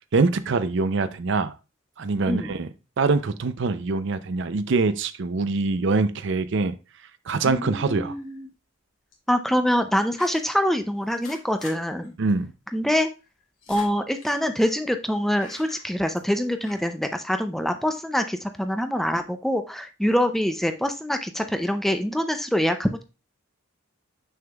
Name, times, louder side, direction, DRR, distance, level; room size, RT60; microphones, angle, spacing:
voice 1, 0.0-1.5 2.0-2.7 3.0-6.7 7.3-8.1 12.2-12.5, right 3 dB, 60° right, 13 dB, 0.5 m, -24 dB
voice 2, 7.4-8.5 9.3-12.2 12.7-13.1 13.7-23.0, equal, ahead, 8 dB, 0.4 m, -25 dB
sound 1, 8.0-8.4 9.1-9.3 10.1-10.6 11.1-11.8 12.0-12.1 12.4-12.5 13.2-14.8 15.4-16.3 16.6-16.8, left 4 dB, 85° left, 1.9 m, -46 dB
7.0 x 6.4 x 2.3 m, 0.30 s
head